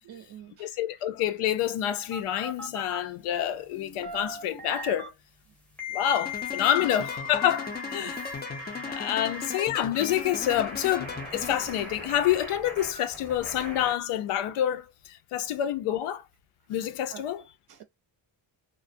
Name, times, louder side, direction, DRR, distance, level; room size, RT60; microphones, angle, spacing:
voice 1, 0.0-0.7 6.8-6.9 8.0-8.3 9.2-9.5 17.1-17.2 17.7-17.8, right 10 dB, 50° right, 0.5 m, -47 dB
voice 2, 0.6-5.1 5.9-8.2 8.9-16.2 16.7-17.4, left 11 dB, 85° left, 0.6 m, -28 dB
sound 1, 2.1-3.0 3.7-5.1 5.8-9.6 9.9-13.9, left 3 dB, ahead, 0.7 m, -39 dB
sound 2, 6.3-11.9, left 5 dB, 20° left, 0.4 m, -38 dB
2.3 x 2.1 x 2.5 m
cardioid pair, 140°, 49 cm